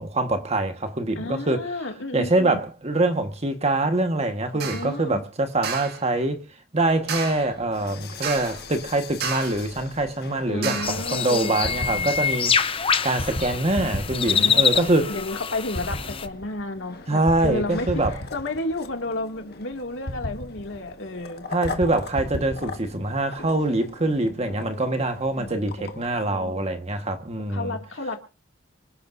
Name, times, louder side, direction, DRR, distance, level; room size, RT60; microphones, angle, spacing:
voice 1, 0.0-1.6 2.1-6.4 6.7-12.6 13.0-15.1 17.1-18.2 21.5-27.8, right 2 dB, 35° right, 1.5 m, -24 dB
voice 2, 1.2-2.7 4.5-5.2 10.5-12.1 14.3-17.9 18.1-21.4 25.3-25.9 26.2-26.7 27.5-28.2, left 2 dB, 75° left, 2.4 m, -32 dB
sound 1, 4.6-4.9 5.6-6.0 7.1-7.5 8.2-8.7 9.2-9.7 10.6-11.1, right 5 dB, 55° right, 1.9 m, -31 dB
sound 2, 6.8-26.3, left 1 dB, 55° left, 1.6 m, -38 dB
sound 3, 10.8-16.3, left 6 dB, 30° left, 0.8 m, -25 dB
26.0 x 12.0 x 2.7 m
head